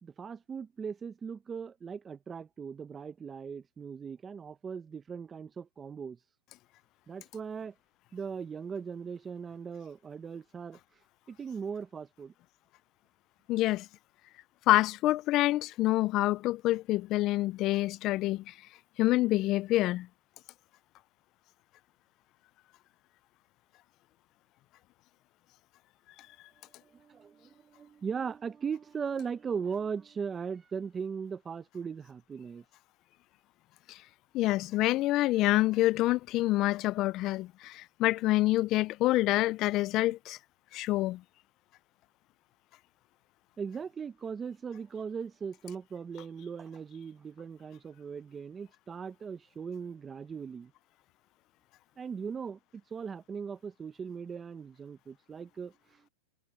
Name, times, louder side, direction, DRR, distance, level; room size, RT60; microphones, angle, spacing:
voice 1, 0.0-6.2 7.1-7.7 8.1-10.8 11.3-12.3 26.8-32.6 43.6-50.7 52.0-56.1, right 6 dB, 15° right, 0.9 m, -39 dB
voice 2, 13.5-13.9 14.7-18.6 19.0-20.1 33.9-34.0 34.3-40.4 40.7-41.2, left 17 dB, 35° left, 0.4 m, -27 dB
supercardioid pair, 140°, 0 cm